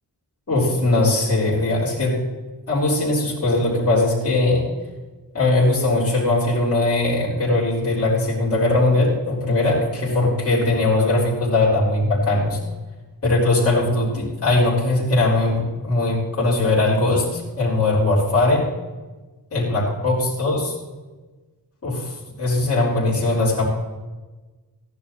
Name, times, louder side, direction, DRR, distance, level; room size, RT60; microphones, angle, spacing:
voice 1, 0.5-2.2 2.7-4.6 5.3-12.6 13.2-18.6 19.5-20.7 21.8-22.1 22.4-23.6, left 2 dB, 35° left, -6 dB, 4.1 m, -20 dB
15.0 x 11.0 x 4.2 m, 1.2 s
wide cardioid pair, 165°, 42 cm